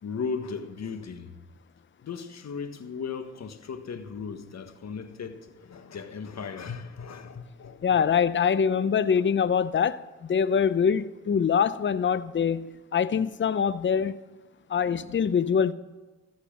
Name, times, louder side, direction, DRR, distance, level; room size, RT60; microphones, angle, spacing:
voice 1, 0.0-1.4 2.0-8.0 14.7-15.4, left 5 dB, 60° left, 1.6 m, -37 dB
voice 2, 7.8-10.0 10.3-14.2 14.7-15.7, left 7 dB, 40° left, 0.7 m, -24 dB
15.0 x 7.5 x 7.4 m
supercardioid pair, 45°, 31 cm